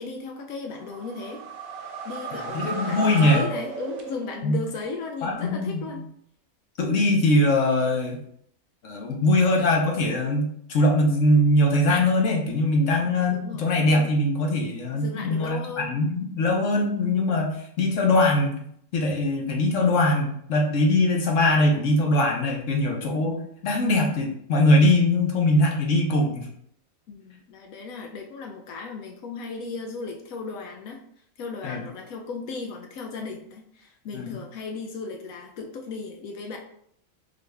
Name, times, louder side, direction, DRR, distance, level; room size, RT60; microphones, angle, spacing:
voice 1, 0.0-1.4 2.0-6.1 12.5-12.9 13.3-13.7 14.9-16.0 27.1-31.0 31.4-36.6, left 4 dB, 85° left, 2 dB, 1.1 m, -36 dB
sound 1, 0.8-4.6, right 3 dB, 75° right, 1.1 m, -34 dB
voice 2, 2.3-3.4 4.4-4.6 5.2-6.0 6.8-8.2 8.8-18.6 18.9-26.5 31.6-31.8 34.1-34.4, left 1 dB, 65° left, 1 dB, 1.2 m, -22 dB
3.9 x 3.3 x 3.3 m, 0.68 s
omnidirectional pair, 1.4 m